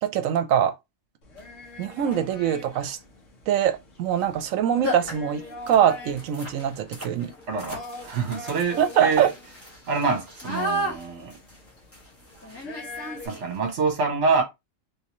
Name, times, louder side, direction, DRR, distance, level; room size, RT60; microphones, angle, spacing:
voice 1, 0.0-0.7 1.8-3.0 3.5-7.3 8.8-9.3, right 9 dB, 80° right, 1.0 m, -23 dB
sound 1, 1.2-13.3, left 3 dB, 70° left, 1.3 m, -43 dB
sound 2, 1.4-1.5 2.0-2.4 4.1-4.3 4.5-4.6 4.8-13.7, equal, 10° left, 1.3 m, -35 dB
voice 2, 7.5-9.3 9.9-11.3 13.2-14.4, right 4 dB, 60° right, 1.2 m, -26 dB
3.3 x 2.8 x 2.9 m
omnidirectional pair, 1.4 m